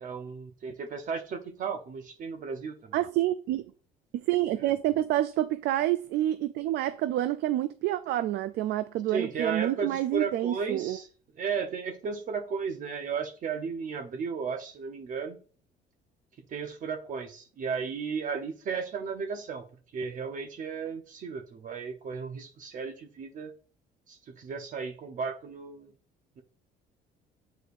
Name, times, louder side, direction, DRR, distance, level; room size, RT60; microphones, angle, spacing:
voice 1, 0.0-3.0 4.6-4.7 9.1-11.1 11.4-15.4 16.5-19.6 19.9-23.5 24.1-25.9, right 5 dB, 50° right, 0.8 m, -34 dB
voice 2, 2.9-3.7 4.1-11.0, right 13 dB, 80° right, 0.4 m, -28 dB
8.2 x 4.5 x 2.5 m
cardioid pair, 110°, 17 cm